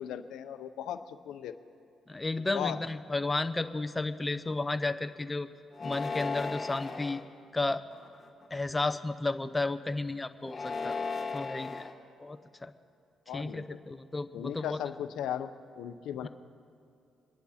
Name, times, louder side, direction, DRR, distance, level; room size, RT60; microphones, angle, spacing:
voice 1, 0.0-1.5 2.5-2.8 13.3-13.8 14.3-15.5 15.8-16.3, left 10 dB, 85° left, 10 dB, 0.6 m, -37 dB
voice 2, 2.1-5.5 5.8-7.2 7.5-7.8 8.5-11.0 11.3-11.9 12.2-12.7 13.3-14.8 16.2-16.3, left 2 dB, 15° left, 9 dB, 0.7 m, -33 dB
sound 1, 5.7-7.2 7.9-8.4 10.4-11.9, left 4 dB, 30° left, 1.4 m, -36 dB
25.5 x 11.0 x 4.3 m, 2.6 s
cardioid pair, 90°, 0 cm